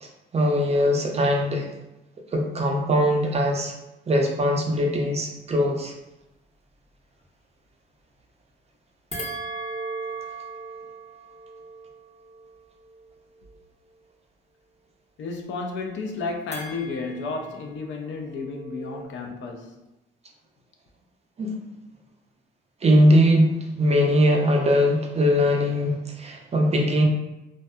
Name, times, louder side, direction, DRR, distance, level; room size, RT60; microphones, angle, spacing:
voice 1, 0.0-1.7 2.3-3.7 4.1-5.9 21.4-21.5 22.8-27.0, equal, 30° right, 0.5 m, -21 dB
sound 1, 9.1-13.6 16.5-19.0, right 2 dB, 30° left, 0.7 m, -38 dB
voice 2, 15.2-19.8, left 4 dB, 70° left, 0.5 m, -32 dB
2.6 x 2.2 x 2.2 m
cardioid pair, 90°, 20 cm